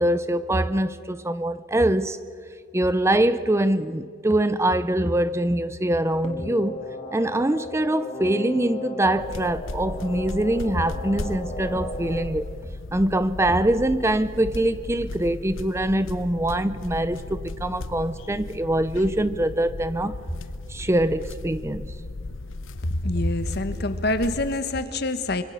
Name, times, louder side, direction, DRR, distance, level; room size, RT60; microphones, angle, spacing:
voice 1, 0.0-2.2 2.7-6.8 7.1-12.5 12.9-20.1 20.7-21.9, right 1 dB, 15° right, 0.6 m, -23 dB
sound 1, 6.2-12.2, left 3 dB, 30° left, 2.9 m, -35 dB
sound 2, 9.2-24.6, left 2 dB, 75° left, 0.8 m, -36 dB
voice 2, 22.8-25.4, left 1 dB, 55° left, 1.5 m, -25 dB
26.0 x 25.0 x 6.7 m
head